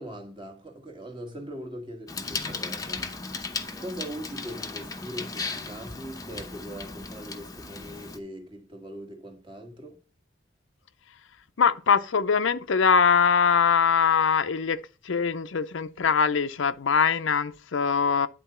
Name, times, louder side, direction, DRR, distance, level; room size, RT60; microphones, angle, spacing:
voice 1, 0.0-3.1 3.8-10.0, equal, 25° right, 1.5 m, -41 dB
Bicycle, 2.1-8.2, left 4 dB, 15° left, 0.7 m, -36 dB
voice 2, 11.6-18.3, left 6 dB, 70° left, 0.5 m, -22 dB
10.0 x 3.9 x 5.5 m
head